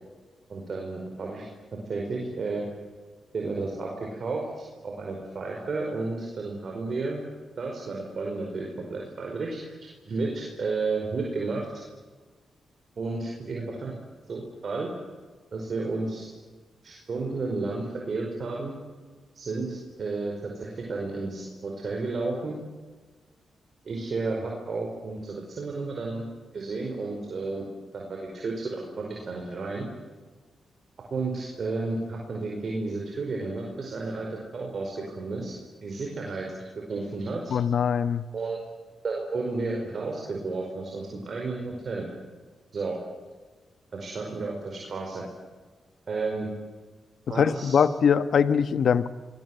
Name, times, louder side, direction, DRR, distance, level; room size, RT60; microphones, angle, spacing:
voice 1, 0.5-1.5 1.9-2.7 3.3-7.2 7.6-9.7 10.0-11.7 13.0-13.9 14.3-14.9 15.5-16.3 16.8-18.7 19.3-22.6 23.8-26.2 26.5-27.7 27.9-29.9 31.1-35.5 35.8-36.5 36.9-37.5 38.3-38.6 39.0-42.1 42.7-43.0 43.9-45.2 46.1-46.5 47.3-47.8, right 3 dB, 60° right, 0 dB, 5.1 m, -32 dB
voice 2, 37.5-38.3 47.3-49.1, left 7 dB, 70° left, 13 dB, 1.1 m, -22 dB
26.5 x 21.0 x 8.0 m, 1.4 s
supercardioid pair, 50°, 0 cm